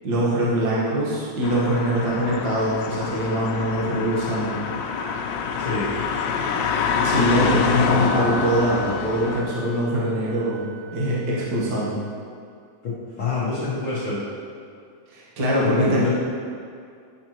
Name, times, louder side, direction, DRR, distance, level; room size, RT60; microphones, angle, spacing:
voice 1, 0.0-4.6 7.0-10.6 10.9-12.0 15.1-16.1, equal, 65° right, -7 dB, 1.0 m, -23 dB
sound 1, 1.4-9.4, left 6 dB, 90° left, 2.4 m, -26 dB
Wind instrument woodwind instrument, 4.2-12.0, equal, 80° right, 2.2 m, -40 dB
voice 2, 5.6-5.9 12.8-14.3 15.6-16.1, left 4 dB, 65° left, -9 dB, 1.2 m, -27 dB
10.5 x 5.8 x 3.0 m, 2.3 s
omnidirectional pair, 4.1 m